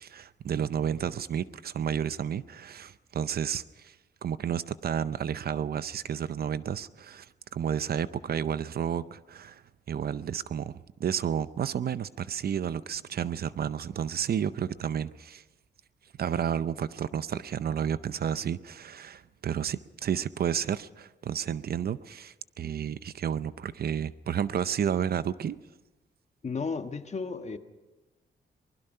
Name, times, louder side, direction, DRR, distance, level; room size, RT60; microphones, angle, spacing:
voice 1, 0.0-4.0 4.2-9.6 9.9-10.7 11.0-15.4 16.2-25.6, right 8 dB, 60° right, 0.6 m, -31 dB
voice 2, 26.4-27.6, left 4 dB, 40° left, 1.4 m, -33 dB
24.0 x 20.5 x 5.6 m
cardioid pair, 110°, 18 cm